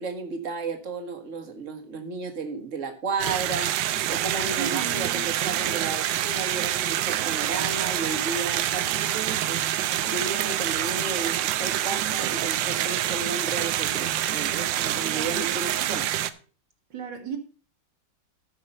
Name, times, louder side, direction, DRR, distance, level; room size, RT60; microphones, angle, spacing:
voice 1, 0.0-3.7 4.1-9.6 10.1-16.1, right 4 dB, 45° right, 1.8 m, -33 dB
sound 1, 3.2-16.3, right 12 dB, 85° right, 1.4 m, -26 dB
voice 2, 4.6-5.3 15.1-15.5 16.9-17.4, right 8 dB, 70° right, 2.3 m, -35 dB
13.0 x 5.5 x 5.4 m
omnidirectional pair, 2.0 m